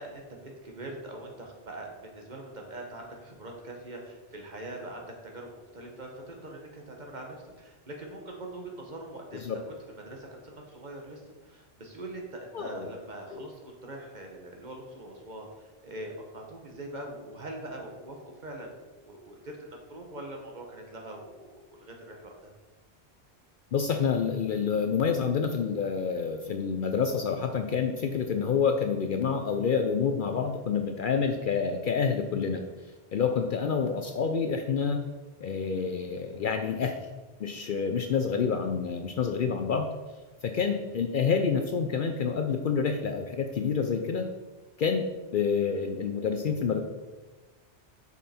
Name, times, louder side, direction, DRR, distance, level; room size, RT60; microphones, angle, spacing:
voice 1, 0.0-9.6 10.0-18.2 18.4-18.7 19.0-22.5, right 1 dB, 45° right, 1 dB, 1.2 m, -43 dB
voice 2, 12.5-12.9 13.3-13.5 23.7-32.6 33.1-35.0 35.4-37.0 37.4-39.9 40.4-44.3 44.8-45.0 45.3-46.8, left 6 dB, 60° left, 5 dB, 0.6 m, -28 dB
6.1 x 5.5 x 4.2 m, 1.2 s
omnidirectional pair, 1.1 m